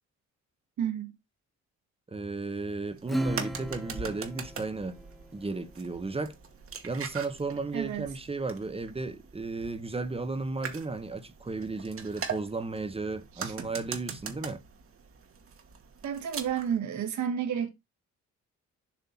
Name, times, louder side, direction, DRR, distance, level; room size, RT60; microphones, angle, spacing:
voice 1, 0.8-1.1 7.7-8.1 13.4-13.5 16.0-17.7, right 8 dB, 70° right, 1.7 m, -31 dB
voice 2, 2.1-5.0 5.3-6.3 6.8-14.6, right 3 dB, 20° right, 0.9 m, -34 dB
sound 1, 2.9-16.8, right 6 dB, 45° right, 1.3 m, -42 dB
Acoustic guitar / Strum, 3.1-6.0, equal, ahead, 0.4 m, -37 dB
7.2 x 2.7 x 5.8 m
cardioid pair, 90°, 30 cm